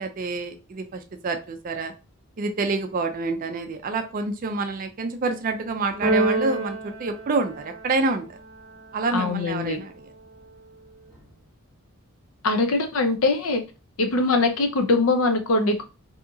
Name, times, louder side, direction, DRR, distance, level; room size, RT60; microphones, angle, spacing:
voice 1, 0.0-1.9 2.4-8.3 8.9-9.9, right 3 dB, 40° right, 7 dB, 0.3 m, -27 dB
Keyboard (musical), 6.0-8.1, right 2 dB, 20° right, 0.9 m, -26 dB
voice 2, 9.1-9.8 12.4-13.6 14.0-15.8, left 3 dB, 70° left, 6 dB, 0.5 m, -22 dB
2.7 x 2.4 x 2.6 m, 0.31 s
head